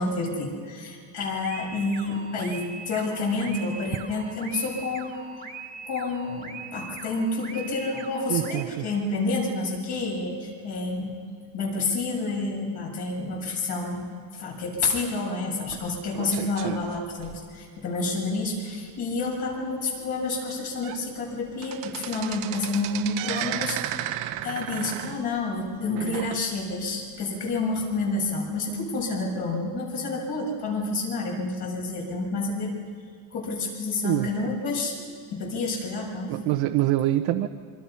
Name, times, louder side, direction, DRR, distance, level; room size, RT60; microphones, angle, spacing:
voice 1, 0.0-5.1 5.9-11.2 11.5-24.1 24.4-32.8 33.3-35.1 35.3-36.4, left 3 dB, 50° left, -1 dB, 7.6 m, -29 dB
sound 1, 1.4-8.6, right 5 dB, 15° right, 1.9 m, -41 dB
voice 2, 8.3-8.7 34.0-34.5 36.3-37.5, right 14 dB, 60° right, 4 dB, 1.1 m, -25 dB
sound 2, 15.7-17.9 18.4-18.5 18.9-19.0 19.5-19.6 20.3-20.4 20.7-21.0 21.3-26.8 27.2-27.3 28.1-28.2, right 13 dB, 90° right, 1.5 m, -34 dB
27.0 x 25.5 x 5.8 m, 2.2 s
cardioid pair, 155°, 49 cm